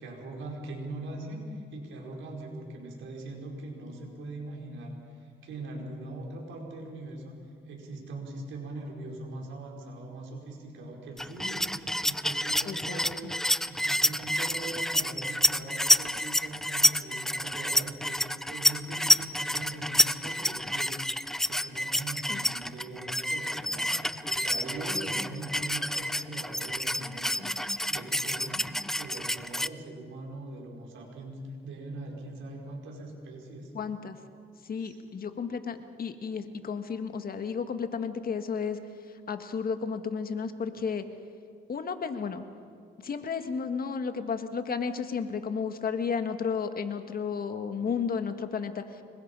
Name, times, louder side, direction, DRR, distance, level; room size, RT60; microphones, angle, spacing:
voice 1, 0.0-7.4 7.7-11.7 12.0-13.3 13.7-21.0 21.4-28.7 29.0-33.7 34.8-35.0, right 2 dB, 75° right, 0 dB, 5.2 m, -41 dB
sound 1, 11.2-29.7, equal, ahead, 0.6 m, -28 dB
voice 2, 12.7-13.0 22.3-22.4 33.7-34.2 34.7-38.8 39.3-41.0 41.7-42.4 43.0-48.8, left 6 dB, 50° left, 8 dB, 1.7 m, -32 dB
26.0 x 22.5 x 5.6 m, 2.3 s
cardioid pair, 90°, 20 cm